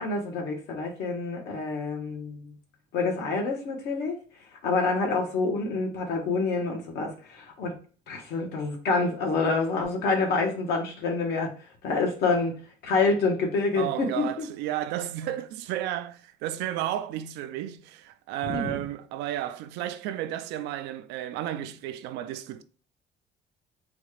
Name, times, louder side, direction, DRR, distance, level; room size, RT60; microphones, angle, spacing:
voice 1, 0.0-2.5 2.9-4.2 4.6-7.7 8.1-11.5 11.8-14.5 18.4-18.8, left 3 dB, 80° left, 1.2 m, -27 dB
voice 2, 13.8-22.6, right 12 dB, 90° right, 0.4 m, -33 dB
4.0 x 2.4 x 3.2 m
cardioid pair, 110°, 17 cm